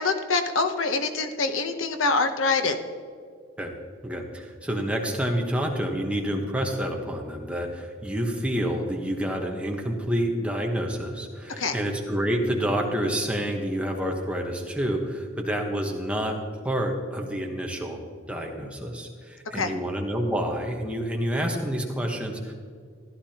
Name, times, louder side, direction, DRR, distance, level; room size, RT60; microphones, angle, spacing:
voice 1, 0.0-2.8 11.6-11.8 19.5-19.7, left 3 dB, 80° left, 7 dB, 0.9 m, -25 dB
voice 2, 4.0-16.4 16.6-18.0 18.3-22.5, equal, 5° right, 1 dB, 1.1 m, -28 dB
15.0 x 12.0 x 2.9 m, 2.1 s
head